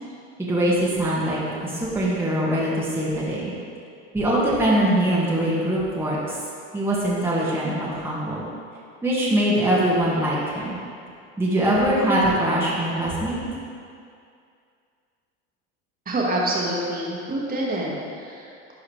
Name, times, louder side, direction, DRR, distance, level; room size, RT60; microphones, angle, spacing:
voice 1, 0.4-3.5 4.1-6.4 6.7-8.4 9.0-10.8 11.4-13.4, right 1 dB, 5° right, -7 dB, 1.9 m, -22 dB
voice 2, 16.1-18.7, right 1 dB, 25° right, -3 dB, 2.0 m, -27 dB
12.0 x 4.7 x 3.4 m, 2.4 s
hypercardioid pair, 85°, 33 cm